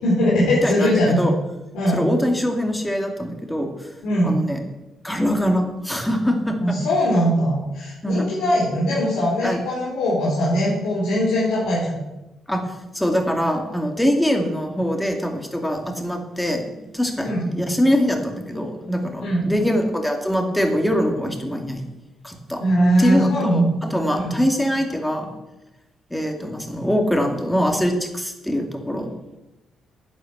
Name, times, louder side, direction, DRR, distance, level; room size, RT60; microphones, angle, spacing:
voice 1, 0.0-1.2 1.7-2.0 4.0-4.4 6.6-12.0 17.2-17.5 19.2-19.5 22.6-23.7 24.1-24.3, equal, 85° left, -6 dB, 4.6 m, -20 dB
voice 2, 1.9-3.9 4.2-4.6 5.0-6.8 8.0-8.3 9.4-9.6 12.5-12.6 12.9-21.8 22.2-22.6 23.0-25.3 26.1-29.1, equal, 5° left, 3 dB, 2.6 m, -23 dB
11.0 x 9.3 x 7.5 m, 0.99 s
cardioid pair, 90°, 0 cm